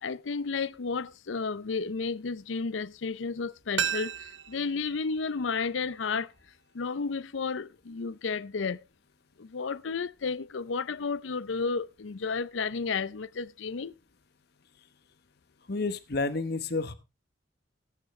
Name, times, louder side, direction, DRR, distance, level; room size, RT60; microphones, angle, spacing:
voice 1, 0.0-6.3 6.7-8.8 9.4-13.9, left 4 dB, 85° left, 0.6 m, -32 dB
sound 1, 3.8-6.6 6.8-6.9, right 8 dB, 75° right, 0.7 m, -36 dB
voice 2, 15.7-16.9, left 3 dB, 55° left, 1.0 m, -30 dB
18.0 x 8.9 x 3.2 m
head